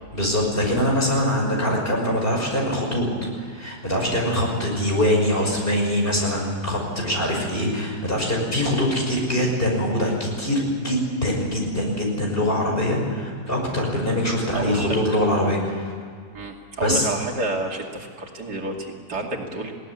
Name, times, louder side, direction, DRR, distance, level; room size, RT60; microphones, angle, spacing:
voice 1, 0.1-3.1 3.4-15.9 16.8-17.1, left 1 dB, 35° left, 0 dB, 6.1 m, -23 dB
voice 2, 14.5-15.0 16.3-19.7, right 2 dB, 80° right, 1 dB, 3.2 m, -29 dB
20.5 x 18.0 x 9.9 m, 2.1 s
omnidirectional pair, 1.7 m